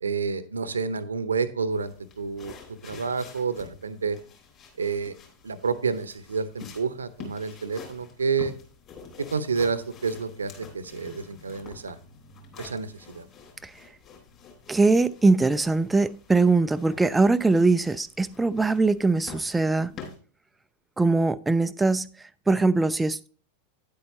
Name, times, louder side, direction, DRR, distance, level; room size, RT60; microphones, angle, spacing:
voice 1, 0.0-2.5 2.8-4.2 4.8-5.1 5.4-8.5 9.2-12.0 12.6-13.2, right 5 dB, 75° right, 0.8 m, -29 dB
sound 1, 1.7-20.2, left 5 dB, 30° left, 3.7 m, -47 dB
voice 2, 14.7-19.9 21.0-22.1 22.5-23.3, right 3 dB, 10° right, 0.3 m, -22 dB
10.0 x 8.4 x 2.8 m
figure-of-eight pair, 90°, 0 cm